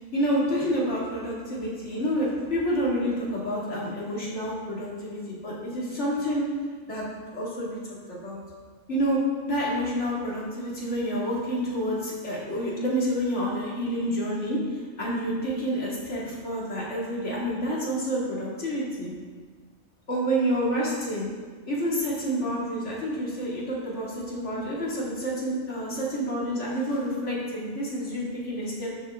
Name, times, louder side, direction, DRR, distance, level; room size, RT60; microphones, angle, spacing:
voice 1, 0.1-6.5 6.9-7.0 7.3-8.4 8.9-9.2 9.5-19.1 20.1-21.3 21.7-28.9, equal, 55° left, -5 dB, 2.7 m, -28 dB
11.5 x 8.0 x 3.7 m, 1.5 s
omnidirectional pair, 1.4 m